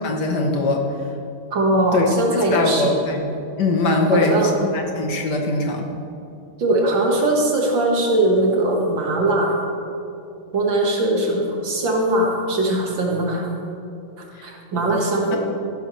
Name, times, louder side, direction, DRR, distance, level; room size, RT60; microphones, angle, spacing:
voice 1, 0.0-0.8 1.9-2.1 2.5-3.3 3.6-4.4 4.7-5.9 14.3-14.5, left 2 dB, 60° left, 2 dB, 1.5 m, -21 dB
voice 2, 1.5-2.9 4.1-4.5 6.6-9.5 10.5-13.5 14.4-15.4, right 1 dB, 65° right, -1 dB, 2.4 m, -20 dB
14.5 x 11.5 x 3.2 m, 2.7 s
omnidirectional pair, 2.2 m